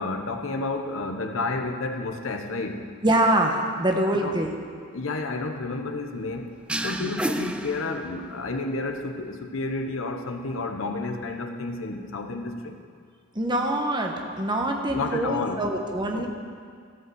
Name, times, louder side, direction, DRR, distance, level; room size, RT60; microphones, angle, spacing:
voice 1, 0.0-2.9 4.2-4.4 4.9-6.5 6.8-12.8 14.9-15.7 16.1-16.3, left 3 dB, 75° left, 5 dB, 0.9 m, -31 dB
voice 2, 3.0-4.5 7.0-7.1 13.3-16.3, right 1 dB, 20° right, 2 dB, 1.1 m, -24 dB
sound 1, 6.7-8.5, right 1 dB, 5° right, 0.3 m, -31 dB
15.5 x 5.3 x 7.8 m, 2.1 s
head